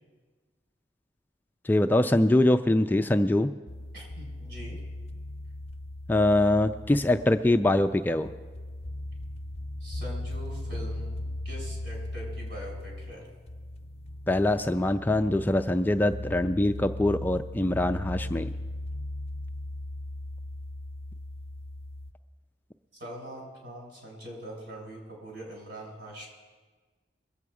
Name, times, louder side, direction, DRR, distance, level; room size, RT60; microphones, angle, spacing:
voice 1, 1.7-3.5 6.1-8.3 14.3-18.5, left 1 dB, 10° left, 7 dB, 0.3 m, -23 dB
sound 1, 3.7-22.1, left 1 dB, 35° left, 0.7 m, -38 dB
voice 2, 3.9-4.8 9.8-13.3 23.0-26.3, equal, 65° right, -2 dB, 5.4 m, -43 dB
22.5 x 8.1 x 4.8 m, 1.4 s
head